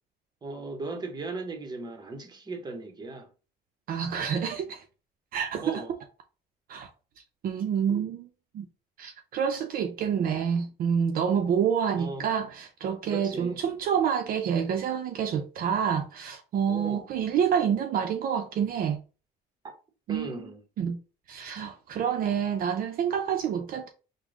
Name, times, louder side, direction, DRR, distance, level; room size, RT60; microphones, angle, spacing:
voice 1, 0.4-3.3 5.5-6.0 11.9-12.3 13.1-13.6 16.7-17.1 19.6-19.7 20.1-20.6, right 3 dB, 25° right, 0.8 m, -37 dB
voice 2, 3.9-4.8 5.3-5.8 6.7-6.9 7.4-8.3 8.5-8.7 9.0-19.0 20.1-20.3 20.8-21.0 21.3-23.9, right 7 dB, 60° right, 0.5 m, -28 dB
3.5 x 2.1 x 3.6 m
cardioid pair, 110°, 17 cm